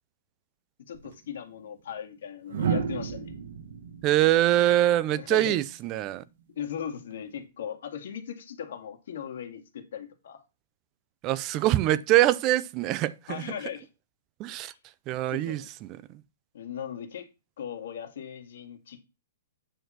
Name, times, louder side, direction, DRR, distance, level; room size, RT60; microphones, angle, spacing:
voice 1, 0.8-3.3 5.1-5.6 6.5-10.4 13.3-13.9 14.7-14.8 15.3-15.7 16.5-17.3 17.6-19.0, left 8 dB, 65° left, 2.0 m, -38 dB
sound 1, 0.9-1.1 2.5-5.5 7.1-7.4, right 7 dB, 65° right, 1.5 m, -33 dB
voice 2, 4.0-6.2 11.2-13.4 14.4-14.7 15.1-16.0, right 14 dB, 25° right, 0.5 m, -24 dB
9.2 x 4.3 x 6.2 m
hypercardioid pair, 165°, 0 cm